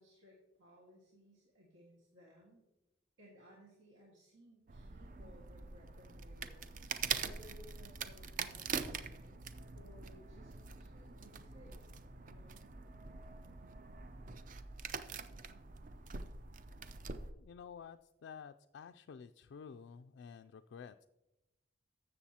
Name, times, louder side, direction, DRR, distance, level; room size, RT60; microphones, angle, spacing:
voice 1, 0.0-2.6 3.2-6.8 7.2-11.9 12.2-12.7, equal, 85° right, -4 dB, 1.8 m, -61 dB
sound 1, 4.7-17.3, right 5 dB, 45° right, 0.5 m, -44 dB
voice 2, 17.4-21.1, left 6 dB, 65° left, 7 dB, 0.3 m, -51 dB
14.5 x 6.6 x 2.8 m, 0.98 s
head